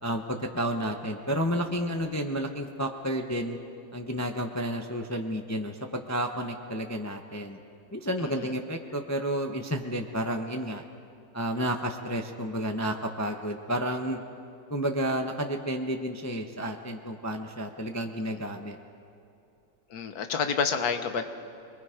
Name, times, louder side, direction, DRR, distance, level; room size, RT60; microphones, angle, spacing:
voice 1, 0.0-3.6 3.9-7.6 7.9-10.8 11.3-14.2 14.7-18.8, equal, 15° left, 4 dB, 0.6 m, -31 dB
voice 2, 19.9-21.2, left 6 dB, 60° left, 8 dB, 1.6 m, -29 dB
28.0 x 21.5 x 5.1 m, 2.6 s
omnidirectional pair, 1.8 m